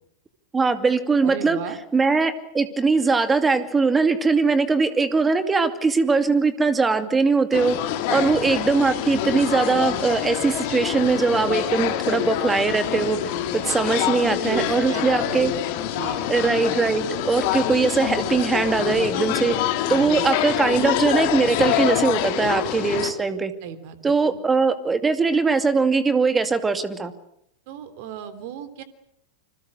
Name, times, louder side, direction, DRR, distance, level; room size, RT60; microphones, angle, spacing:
voice 1, 0.5-1.6 1.9-7.7 8.1-13.2 13.5-15.5 16.3-23.5 24.0-27.1, right 4 dB, 15° right, 10 dB, 2.5 m, -21 dB
voice 2, 1.2-1.8 8.1-8.6 14.2-15.6 15.9-16.3 19.9-20.3 23.6-24.4 27.7-28.8, right 9 dB, 50° right, 12 dB, 3.4 m, -35 dB
sound 1, 7.5-23.1, left 11 dB, 50° left, 3.0 m, -26 dB
28.5 x 26.5 x 6.6 m, 0.74 s
figure-of-eight pair, 90°, 0 cm